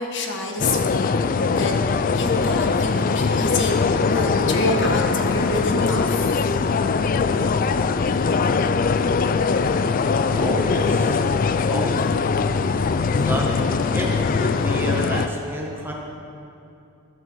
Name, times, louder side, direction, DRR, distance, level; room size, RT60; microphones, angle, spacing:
voice 1, 0.0-1.7 2.1-6.7, left 2 dB, 55° left, 2 dB, 1.4 m, -28 dB
sound 1, 0.6-15.3, left 4 dB, 40° left, 0.3 m, -21 dB
sound 2, 1.8-15.0, left 1 dB, 80° left, 2.2 m, -39 dB
voice 2, 10.3-11.3 11.7-12.1 13.0-13.5 13.9-15.9, equal, 10° right, -2 dB, 1.4 m, -29 dB
13.5 x 13.0 x 4.6 m, 2.7 s
head